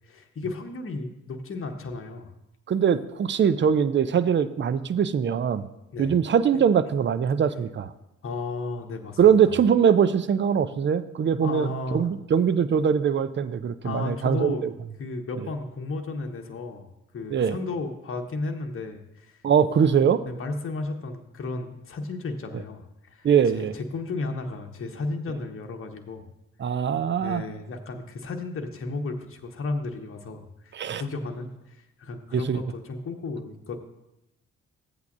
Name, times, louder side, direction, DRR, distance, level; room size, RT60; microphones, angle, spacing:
voice 1, 0.1-2.3 5.9-6.2 8.2-9.2 9.4-9.5 11.4-12.1 13.8-14.7 15.0-16.9 17.1-19.4 20.2-26.3 27.2-33.8, left 3 dB, 35° left, 4 dB, 1.1 m, -34 dB
voice 2, 2.7-5.6 6.0-7.9 9.2-14.7 17.3-17.5 19.4-20.2 23.2-23.7 26.6-27.4 30.7-31.0 32.3-32.6, right 7 dB, 30° right, 13 dB, 0.5 m, -22 dB
13.5 x 8.1 x 2.6 m, 0.89 s
hypercardioid pair, 40°, 38 cm